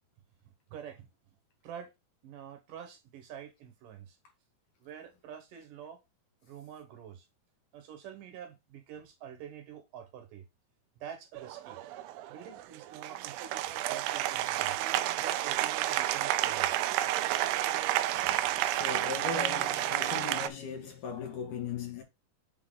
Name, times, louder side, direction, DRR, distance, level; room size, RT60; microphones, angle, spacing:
voice 1, 0.7-1.1 1.6-1.9 2.2-4.2 4.8-6.0 6.4-7.3 7.7-10.4 11.0-11.8 12.3-14.8 15.2-16.7, right 9 dB, 70° right, 2.6 m, -47 dB
Applause, 11.4-20.5, right 14 dB, 85° right, 2.5 m, -31 dB
voice 2, 18.1-22.0, left 5 dB, 60° left, 3.5 m, -38 dB
7.9 x 4.1 x 3.9 m
omnidirectional pair, 4.3 m